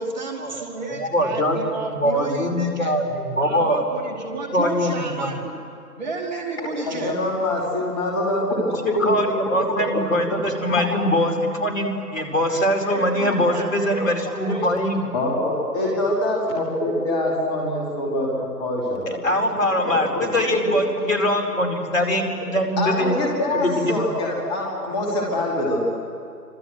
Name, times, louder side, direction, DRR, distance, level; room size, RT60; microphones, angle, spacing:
voice 1, 0.0-2.9 3.4-5.5 6.0-7.2 12.8-14.1 14.4-14.7 15.7-16.0, right 2 dB, 25° right, 3 dB, 2.5 m, -31 dB
voice 2, 1.0-3.8 4.5-5.3 8.8-15.0 19.1-23.2 23.5-23.7, equal, 55° left, 3 dB, 4.7 m, -22 dB
voice 3, 6.6-9.1 9.5-10.0 10.7-10.9 14.0-14.1 15.1-19.1 19.5-19.6 20.1-20.9 22.8-25.8, left 1 dB, 15° left, -2 dB, 2.7 m, -25 dB
29.0 x 25.5 x 7.9 m, 2.5 s
figure-of-eight pair, 145°, 48 cm